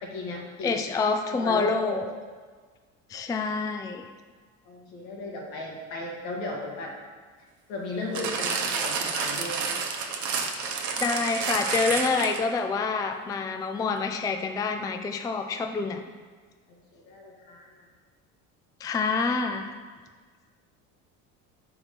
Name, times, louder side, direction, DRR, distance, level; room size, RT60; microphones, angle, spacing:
voice 1, 0.0-0.8 1.3-2.1 4.7-6.9 7.7-9.7 16.9-17.8, left 2 dB, 70° left, -1 dB, 1.7 m, -35 dB
voice 2, 0.6-2.0 3.1-4.0 11.0-16.0 18.8-19.7, left 4 dB, 10° left, 6 dB, 0.3 m, -27 dB
sound 1, 8.2-12.6 13.3-13.4, right 5 dB, 50° right, 1.0 m, -29 dB
4.9 x 4.5 x 5.8 m, 1.5 s
supercardioid pair, 80°, 38 cm